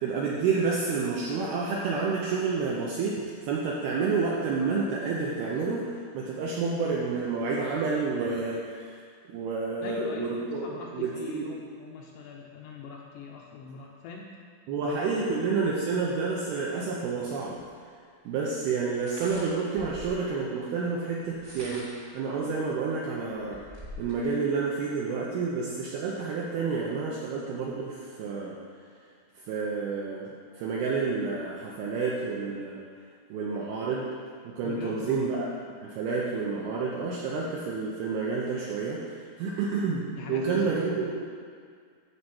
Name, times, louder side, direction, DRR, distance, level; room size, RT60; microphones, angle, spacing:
voice 1, 0.0-9.0 9.3-10.7 10.9-11.5 14.7-17.6 18.3-21.9 22.1-23.6 24.0-28.6 29.4-30.3 30.5-32.8 33.3-34.1 34.4-35.5 35.8-41.3, right 4 dB, 80° right, -4 dB, 2.3 m, -29 dB
voice 2, 9.8-14.3 14.9-15.0 34.6-35.3 40.2-41.0, left 5 dB, 75° left, -1 dB, 2.6 m, -41 dB
sound 1, 17.6-17.7 18.9-20.3 21.2-22.1 22.7-22.8 23.1-24.2, left 1 dB, 30° right, 1.2 m, -44 dB
11.5 x 4.2 x 7.6 m, 2.1 s
omnidirectional pair, 5.5 m